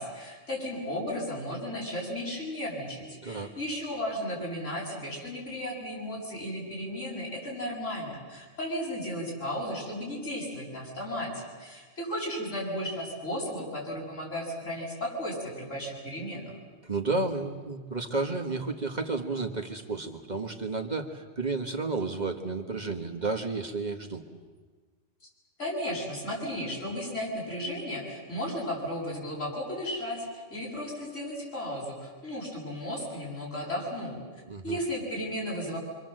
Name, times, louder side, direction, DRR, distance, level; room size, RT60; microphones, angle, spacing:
voice 1, 0.0-16.5 25.2-25.3 25.6-34.2 34.6-35.8, equal, 85° left, -3 dB, 8.3 m, -34 dB
voice 2, 3.2-3.5 16.8-24.2 34.5-34.8, right 3 dB, 35° right, 3 dB, 1.8 m, -32 dB
27.0 x 25.0 x 7.8 m, 1.4 s
omnidirectional pair, 1.2 m